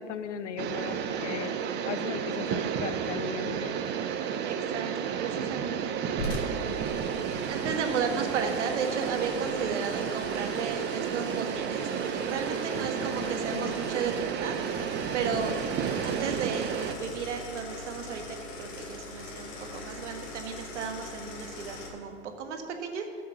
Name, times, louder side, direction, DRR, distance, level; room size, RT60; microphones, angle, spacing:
voice 1, 0.0-3.8 6.5-6.9 13.0-13.8 15.2-15.5, left 8 dB, 80° left, 12 dB, 0.9 m, -38 dB
sound 1, 0.6-16.9, right 8 dB, 30° right, 0.8 m, -32 dB
voice 2, 4.4-4.9 5.2-6.0 7.4-14.1 14.4-14.6 15.1-15.5 16.0-23.2, right 6 dB, 75° right, 5 dB, 1.6 m, -34 dB
sound 2, 6.2-21.9, left 1 dB, 60° left, 3.3 m, -41 dB
13.5 x 7.4 x 6.0 m, 2.3 s
hypercardioid pair, 115°, 35 cm